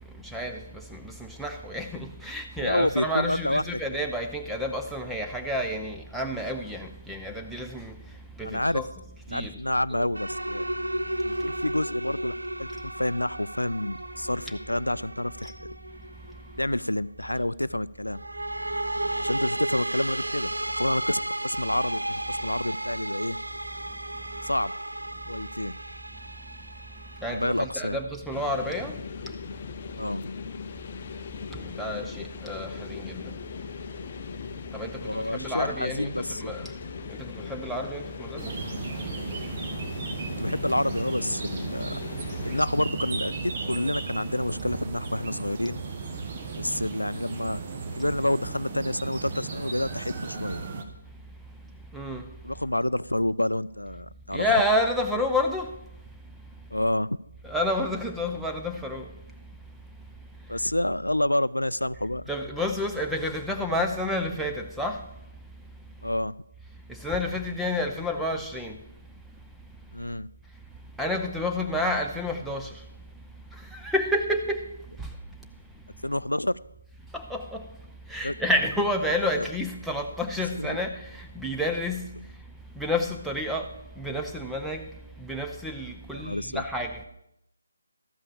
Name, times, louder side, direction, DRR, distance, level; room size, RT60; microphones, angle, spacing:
voice 1, 0.2-7.9 8.4-8.9 9.3-9.6 9.9-10.1 27.2-28.9 31.5-33.2 34.7-36.7 37.1-38.5 51.9-52.3 54.3-55.7 57.4-59.1 62.3-65.0 66.9-68.8 71.0-72.7 73.7-74.6 75.0-75.1 77.1-77.6 78.1-82.0 82.8-83.7 84.0-84.9 85.2-87.0, left 1 dB, ahead, 0.7 m, -30 dB
voice 2, 2.6-3.8 8.4-8.8 9.3-10.7 11.3-15.5 16.6-18.2 19.2-20.5 20.8-23.4 24.4-24.7 25.3-25.7 27.3-28.0 29.9-30.2 35.0-36.5 40.4-42.0 42.4-45.8 46.6-47.6 47.9-50.6 52.4-54.5 56.7-57.1 60.5-62.2 66.0-66.3 69.9-70.3 76.0-76.6 78.2-78.3 79.4-79.5 80.5-80.8 86.1-86.6, left 1 dB, 90° left, 0.3 m, -28 dB
sound 1, 10.1-16.6 18.1-28.0, right 1 dB, 85° right, 0.7 m, -33 dB
sound 2, 28.3-42.6, left 6 dB, 40° left, 0.5 m, -39 dB
sound 3, 38.4-50.8, right 4 dB, 35° right, 1.2 m, -35 dB
13.0 x 5.6 x 7.1 m
figure-of-eight pair, 150°, 0 cm